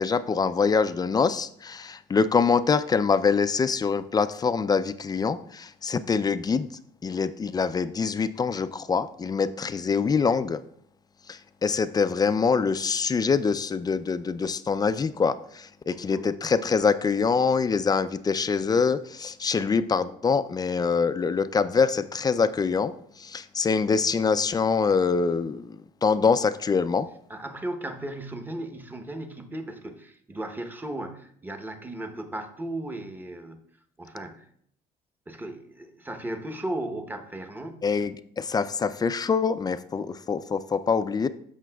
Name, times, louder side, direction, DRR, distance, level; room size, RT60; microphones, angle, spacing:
voice 1, 0.0-6.7 7.0-10.6 11.3-22.9 23.2-25.6 26.0-27.1 37.8-41.3, left 5 dB, 25° left, 12 dB, 0.4 m, -24 dB
voice 2, 15.9-16.3 27.3-33.6 34.0-34.5 35.3-37.9, right 1 dB, 10° right, 6 dB, 0.9 m, -36 dB
13.5 x 5.8 x 2.3 m, 0.68 s
cardioid pair, 110°, 17 cm